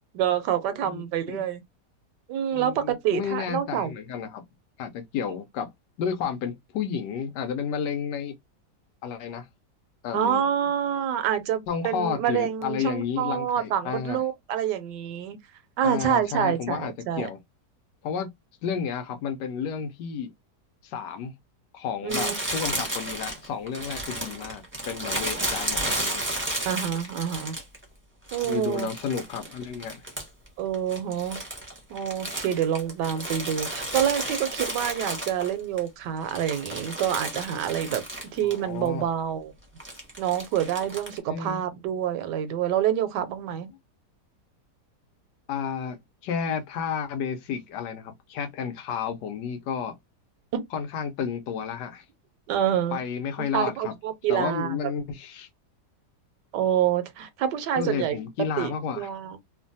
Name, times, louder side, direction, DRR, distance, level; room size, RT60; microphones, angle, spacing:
voice 1, 0.1-1.6 2.3-3.9 10.1-15.4 15.8-17.3 22.0-22.4 22.7-22.9 26.7-27.6 28.3-28.9 30.6-31.4 31.9-38.0 38.3-39.5 40.2-43.7 50.5-50.6 52.5-53.0 53.5-54.8 56.5-58.2 58.6-59.4, right 9 dB, 80° right, 1.2 m, -27 dB
voice 2, 0.8-1.4 2.5-4.4 4.8-5.7 6.0-8.3 9.0-9.5 10.0-10.4 11.7-14.2 15.8-17.4 18.0-18.3 18.6-20.3 20.8-21.3 21.7-26.3 28.4-30.0 38.4-39.1 41.3-41.6 45.5-46.0 46.2-49.9 50.7-52.0 52.9-53.9 54.3-55.5 57.8-59.1, left 7 dB, 80° left, 1.2 m, -31 dB
Crumpling crinkling, 22.1-27.8 28.3-30.5 30.7-35.8 36.2-38.6 38.8-38.9 39.8-41.2, right 1 dB, 10° right, 0.7 m, -33 dB
3.0 x 2.1 x 2.6 m
omnidirectional pair, 1.9 m